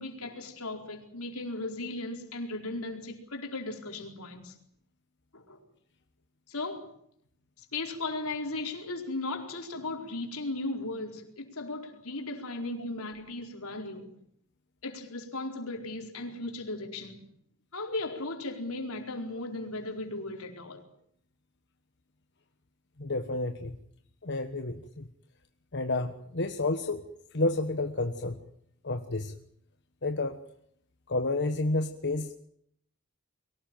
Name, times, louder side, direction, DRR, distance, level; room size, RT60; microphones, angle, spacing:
voice 1, 0.0-4.5 5.3-5.6 6.5-6.9 7.6-14.1 14.8-17.3 17.7-20.8, left 2 dB, 85° left, 3 dB, 4.6 m, -36 dB
voice 2, 23.0-23.7 24.2-25.1 25.7-27.1 27.3-28.4 28.8-29.3 30.0-30.4 31.1-32.3, left 2 dB, 55° left, 6 dB, 1.4 m, -30 dB
23.5 x 18.5 x 9.2 m, 0.69 s
head